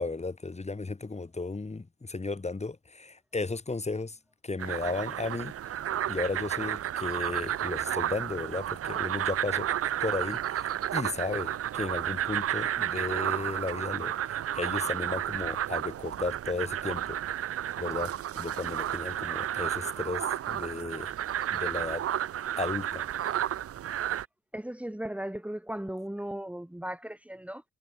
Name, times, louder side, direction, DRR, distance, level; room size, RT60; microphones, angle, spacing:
voice 1, 0.0-4.2 4.4-5.5 6.1-9.7 10.0-17.2 17.8-21.1 21.5-22.0 22.6-23.0, left 3 dB, 20° left, 4.3 m, -34 dB
sound 1, 4.6-24.3, right 11 dB, 50° right, 0.7 m, -32 dB
voice 2, 24.5-27.6, right 1 dB, 5° right, 2.9 m, -37 dB
cardioid pair, 90°, 30 cm